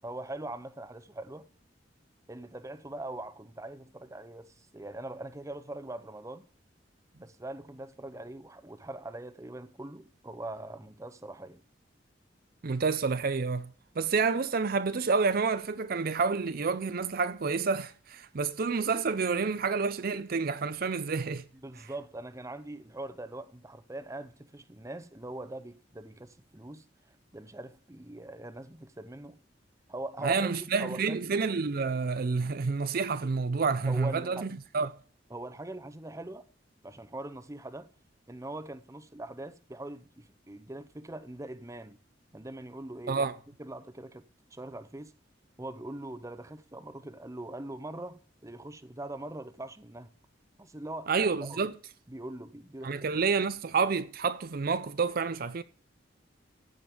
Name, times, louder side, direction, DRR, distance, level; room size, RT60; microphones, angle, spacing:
voice 1, 0.0-1.5 2.3-6.5 7.2-11.6 21.6-26.8 27.3-29.4 29.9-31.3 33.8-34.5 35.3-36.5 36.8-37.9 38.3-42.0 42.3-43.3 43.6-44.2 44.5-45.1 45.6-50.1 50.6-51.7 52.1-53.2, right 1 dB, 15° right, 0.8 m, -42 dB
voice 2, 12.6-13.7 14.0-21.4 30.2-34.9 43.1-43.3 51.1-51.7 52.8-55.6, right 4 dB, 50° right, 0.5 m, -29 dB
15.0 x 5.2 x 8.5 m
head